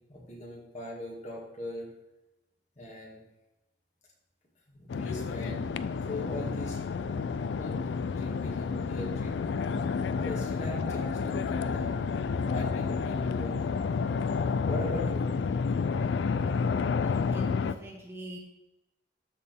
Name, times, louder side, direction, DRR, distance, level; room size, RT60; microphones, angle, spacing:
voice 1, 0.0-1.9 2.8-3.2 4.7-6.8 7.6-9.5 10.2-12.0 12.5-13.9 14.7-15.3, left 1 dB, 40° left, -3 dB, 2.1 m, -40 dB
sound 1, 4.9-17.7, left 5 dB, 70° left, 0.3 m, -30 dB
sound 2, 5.5-14.0, right 3 dB, 75° right, 0.5 m, -54 dB
voice 2, 17.0-18.4, equal, 15° right, 0 dB, 0.8 m, -43 dB
12.5 x 4.4 x 3.5 m, 0.97 s
head